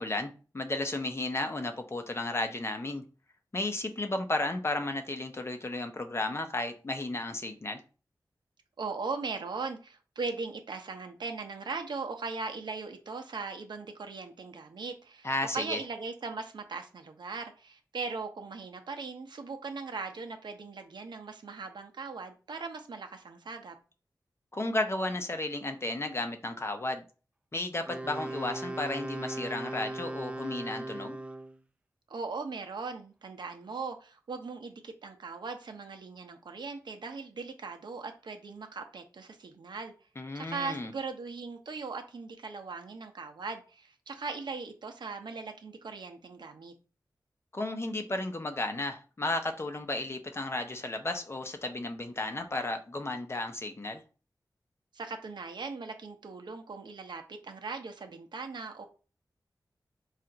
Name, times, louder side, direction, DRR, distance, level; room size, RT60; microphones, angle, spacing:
voice 1, 0.0-3.0 3.5-7.8 15.2-15.8 24.5-27.0 27.5-31.2 40.2-40.9 47.5-54.0, left 2 dB, 35° left, 0.6 m, -33 dB
voice 2, 8.8-23.7 32.1-39.9 40.3-46.7 54.9-58.9, right 4 dB, 85° right, 0.7 m, -39 dB
Wind instrument woodwind instrument, 27.9-31.6, right 2 dB, 15° right, 0.4 m, -38 dB
4.3 x 2.4 x 3.8 m
wide cardioid pair, 95°, 7 cm